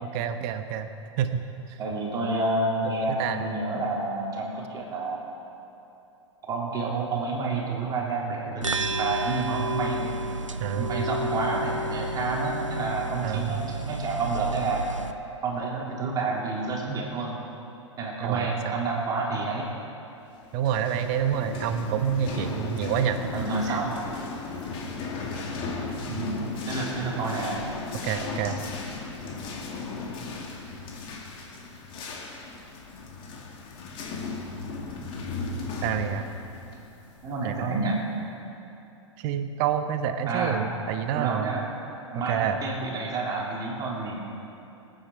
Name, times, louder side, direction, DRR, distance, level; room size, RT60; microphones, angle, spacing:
voice 1, 0.0-0.9 1.2-1.4 3.1-3.4 10.6-11.0 13.2-13.6 18.2-18.8 20.5-23.2 23.7-23.8 28.0-28.6 35.8-36.3 37.4-37.9 39.2-41.6 42.1-42.6, right 9 dB, 40° right, 8 dB, 1.1 m, -28 dB
voice 2, 1.8-5.2 6.5-10.1 10.8-14.8 15.4-17.4 18.0-19.7 23.2-24.0 26.1-27.6 36.6-36.8 37.2-38.0 40.3-40.6 41.1-41.6 42.1-44.2, right 3 dB, 25° right, -3 dB, 3.2 m, -29 dB
sound 1, 8.6-15.1, right 1 dB, 85° right, 0.7 m, -31 dB
sound 2, 20.5-37.9, left 3 dB, 35° left, 2.2 m, -36 dB
26.5 x 9.2 x 4.7 m, 2.9 s
figure-of-eight pair, 100°, 16 cm